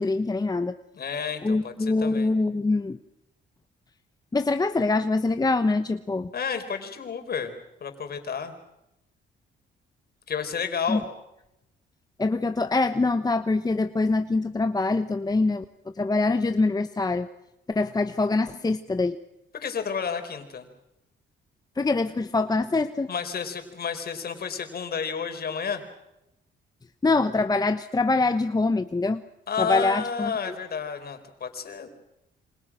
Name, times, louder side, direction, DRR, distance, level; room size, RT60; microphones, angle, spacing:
voice 1, 0.0-0.8 1.4-3.0 4.3-6.3 10.9-11.0 12.2-15.6 15.9-17.3 17.7-19.2 21.8-23.1 27.0-29.2 29.6-30.3, left 3 dB, 20° left, 9 dB, 1.0 m, -24 dB
voice 2, 0.9-2.3 6.3-8.5 10.3-11.0 19.5-20.7 23.1-25.8 29.5-31.9, left 6 dB, 50° left, 7 dB, 4.6 m, -31 dB
28.0 x 26.0 x 6.3 m, 0.89 s
cardioid pair, 90°, 20 cm